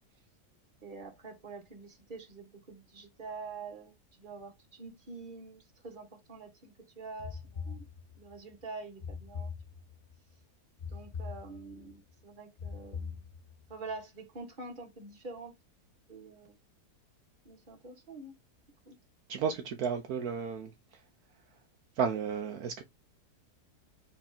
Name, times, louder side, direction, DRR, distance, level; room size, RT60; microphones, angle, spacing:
voice 1, 0.8-3.9 4.2-7.9 8.2-9.5 10.9-13.3 13.7-15.5 16.1-16.6 17.4-18.3 18.8-19.0, right 3 dB, 35° right, 1.5 m, -46 dB
sound 1, 7.2-8.4 9.0-10.2 10.8-12.0 12.6-13.7, left 5 dB, 40° left, 0.8 m, -42 dB
voice 2, 19.3-20.7 22.0-22.8, right 6 dB, 70° right, 1.1 m, -32 dB
4.4 x 4.3 x 2.8 m
omnidirectional pair, 1.7 m